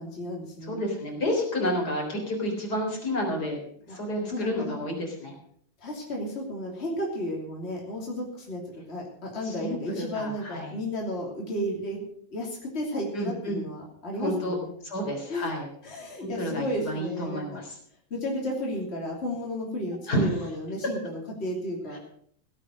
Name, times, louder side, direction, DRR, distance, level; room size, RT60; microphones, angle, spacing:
voice 1, 0.0-0.8 3.9-4.8 5.8-8.6 8.9-12.0 12.3-14.7 15.3-15.5 15.8-17.6 18.1-22.0, left 1 dB, 30° left, -2 dB, 3.4 m, -33 dB
voice 2, 0.6-3.6 3.9-5.3 9.4-10.8 13.1-13.6 14.2-14.6 14.8-15.7 16.2-17.8 20.1-20.3 21.9-22.0, equal, 55° left, 1 dB, 4.3 m, -30 dB
17.0 x 8.4 x 6.4 m, 0.62 s
omnidirectional pair, 2.1 m